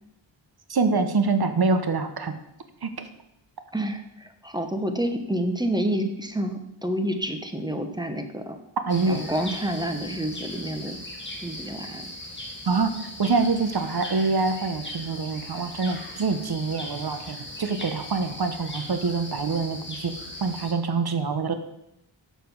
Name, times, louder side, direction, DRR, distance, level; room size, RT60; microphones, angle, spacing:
voice 1, 0.7-2.3 2.8-2.9 8.9-9.2 12.7-12.9 13.2-20.1 20.4-21.5, right 4 dB, 50° right, 9 dB, 1.0 m, -25 dB
voice 2, 3.7-8.6 9.1-11.0 11.4-12.1, right 1 dB, 10° right, 6 dB, 1.1 m, -29 dB
sound 1, 8.9-20.7, left 1 dB, 25° left, 2.1 m, -39 dB
6.8 x 5.9 x 7.0 m, 0.82 s
cardioid pair, 65°, 47 cm